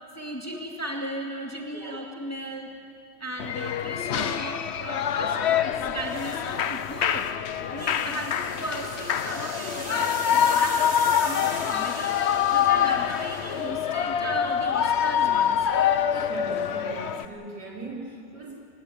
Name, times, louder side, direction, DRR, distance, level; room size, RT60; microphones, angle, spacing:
voice 1, 0.1-2.7 3.2-7.3 7.7-10.1 10.4-15.6, right 1 dB, 10° left, 1 dB, 2.2 m, -35 dB
Shout / Cheering, 3.4-17.3, left 9 dB, 60° left, 0.7 m, -25 dB
sound 1, 5.7-14.3, right 4 dB, 30° right, 1.0 m, -41 dB
voice 2, 16.3-18.6, right 2 dB, 75° right, -2 dB, 4.5 m, -39 dB
25.0 x 19.0 x 8.8 m, 2.4 s
omnidirectional pair, 1.9 m